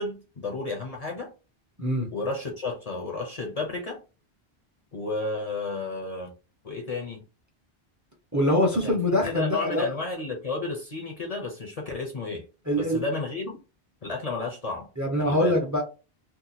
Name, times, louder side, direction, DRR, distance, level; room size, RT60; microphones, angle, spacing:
voice 1, 0.0-1.3 2.1-4.0 4.9-6.3 6.6-7.2 8.8-12.4 12.8-13.6 14.0-14.9 15.2-15.6, left 3 dB, 45° left, 0.7 m, -32 dB
voice 2, 1.8-2.1 8.3-9.9 12.7-13.0 15.0-15.8, left 1 dB, 20° right, 0.6 m, -24 dB
2.8 x 2.1 x 4.0 m
omnidirectional pair, 1.0 m